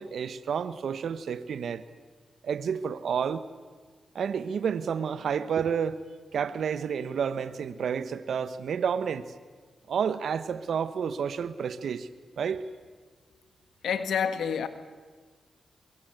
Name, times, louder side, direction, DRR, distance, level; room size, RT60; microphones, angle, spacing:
voice 1, 0.0-1.8 2.4-3.4 4.1-6.0 6.3-9.3 9.9-12.1 12.4-12.6, right 7 dB, 75° right, 1.2 m, -30 dB
voice 2, 13.8-14.7, left 7 dB, 80° left, 1.6 m, -28 dB
23.5 x 23.0 x 8.0 m
supercardioid pair, 45°, 0 cm